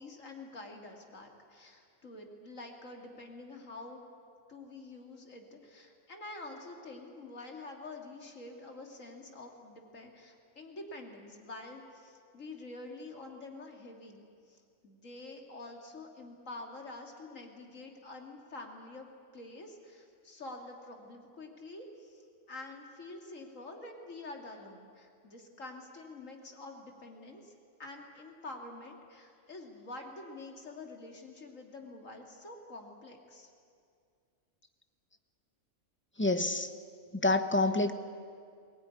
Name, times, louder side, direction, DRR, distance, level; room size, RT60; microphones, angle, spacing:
voice 1, 0.0-4.1 4.5-27.5 27.8-33.5, left 2 dB, 75° left, 3 dB, 2.9 m, -47 dB
voice 2, 36.2-36.7 37.1-37.9, left 2 dB, 10° left, 8 dB, 0.9 m, -27 dB
21.0 x 19.0 x 9.8 m, 2.3 s
omnidirectional pair, 1.4 m